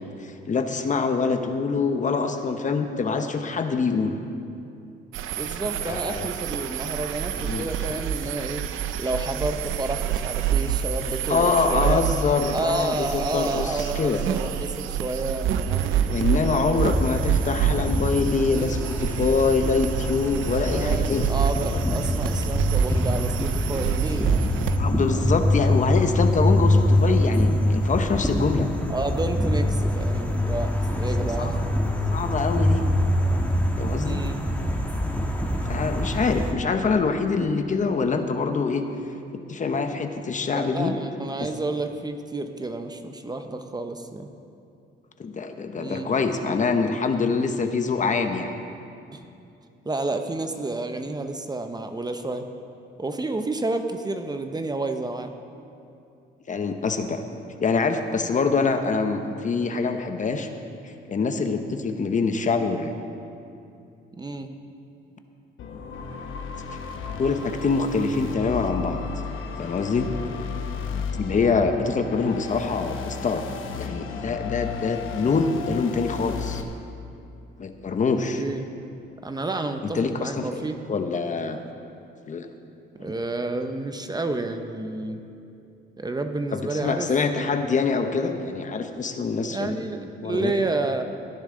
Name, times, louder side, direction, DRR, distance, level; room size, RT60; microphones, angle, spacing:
voice 1, 0.0-4.2 5.8-6.3 7.3-8.0 11.3-14.2 16.0-21.3 21.7-21.8 24.8-28.7 31.2-31.6 32.1-32.8 33.8-34.2 35.6-38.8 39.5-41.0 45.2-48.5 56.5-57.2 57.6-60.5 60.8-62.9 67.1-69.0 69.6-70.1 70.4-70.5 71.0-73.5 73.7-76.6 77.6-78.4 79.9-81.6 82.3-82.5 83.0-83.1 86.5-89.8 90.2-90.5, left 4 dB, 40° left, 6 dB, 0.9 m, -25 dB
sound 1, 5.1-24.8, right 9 dB, 85° right, 0.6 m, -27 dB
voice 2, 5.4-8.6 9.0-12.0 12.5-17.2 20.7-24.5 28.9-31.6 34.0-34.4 40.5-44.3 45.8-46.1 49.1-49.2 49.8-52.5 53.0-55.3 64.2-64.5 78.1-78.6 79.2-80.8 83.0-85.2 86.0-87.5 89.5-91.0, right 2 dB, 20° right, 6 dB, 0.8 m, -30 dB
sound 2, 16.8-36.5, left 1 dB, 5° left, 1.5 m, -24 dB
sound 3, 65.6-76.6, left 6 dB, 80° left, 1.0 m, -34 dB
17.5 x 10.0 x 3.8 m, 2.6 s
cardioid pair, 90°, 20 cm